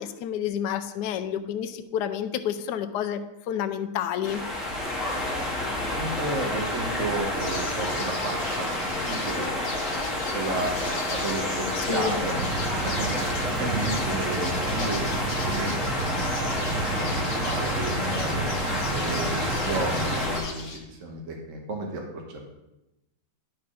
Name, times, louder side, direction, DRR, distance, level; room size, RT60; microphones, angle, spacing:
voice 1, 0.0-4.4 11.8-12.2, left 9 dB, 75° left, 8 dB, 1.1 m, -29 dB
sound 1, 4.2-20.4, left 1 dB, ahead, 2.2 m, -29 dB
voice 2, 6.0-9.5 10.3-12.4 12.7-13.1 13.6-15.7 16.6-18.5 18.9-22.4, right 2 dB, 50° right, 0 dB, 1.3 m, -33 dB
sound 2, 7.4-20.8, left 3 dB, 40° left, 1.3 m, -39 dB
sound 3, 12.4-20.2, right 4 dB, 70° right, 1.1 m, -32 dB
10.5 x 4.7 x 4.9 m, 0.98 s
omnidirectional pair, 1.9 m